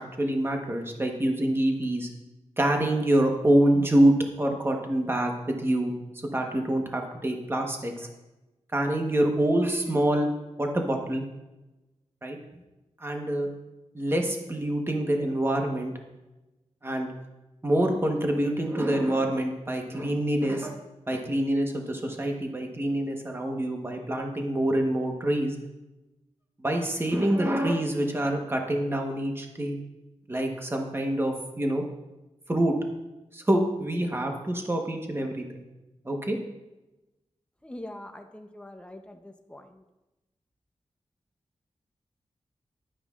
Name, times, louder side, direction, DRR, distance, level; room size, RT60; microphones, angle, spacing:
voice 1, 0.0-2.1 2.6-5.9 6.3-8.1 8.7-10.3 10.6-11.2 12.2-12.4 13.0-13.5 13.9-15.9 16.8-17.1 17.6-20.8 21.1-25.5 26.6-29.8 30.3-31.8 32.5-32.7 33.3-35.6 36.0-36.4, right 1 dB, 20° right, 2 dB, 1.1 m, -26 dB
voice 2, 37.6-39.8, left 1 dB, 10° left, 5 dB, 0.7 m, -43 dB
11.5 x 9.4 x 2.4 m, 1.0 s
wide cardioid pair, 125°, 12 cm